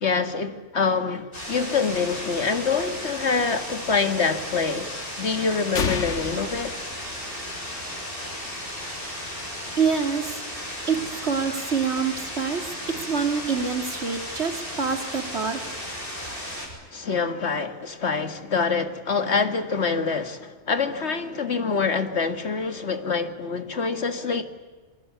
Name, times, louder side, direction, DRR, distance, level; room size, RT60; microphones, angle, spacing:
voice 1, 0.0-6.8 16.9-24.4, left 5 dB, 65° left, 2.1 m, -25 dB
sound 1, 1.3-16.7, equal, 50° left, 7.4 m, -35 dB
sound 2, 5.7-7.7, left 5 dB, 85° left, 1.6 m, -30 dB
voice 2, 9.8-15.8, right 5 dB, 65° right, 2.9 m, -27 dB
26.5 x 24.0 x 8.4 m
omnidirectional pair, 1.2 m